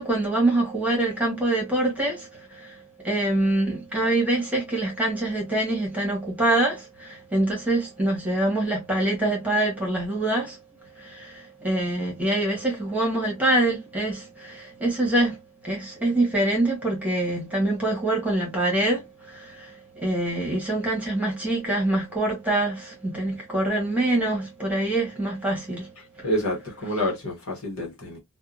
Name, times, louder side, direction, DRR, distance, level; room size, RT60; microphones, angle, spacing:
voice 1, 0.0-10.6 11.0-15.4 15.6-25.9 26.2-26.3, right 1 dB, 5° right, 1.2 m, -25 dB
voice 2, 26.0-28.2, equal, 65° left, 1.1 m, -28 dB
2.7 x 2.2 x 2.4 m
head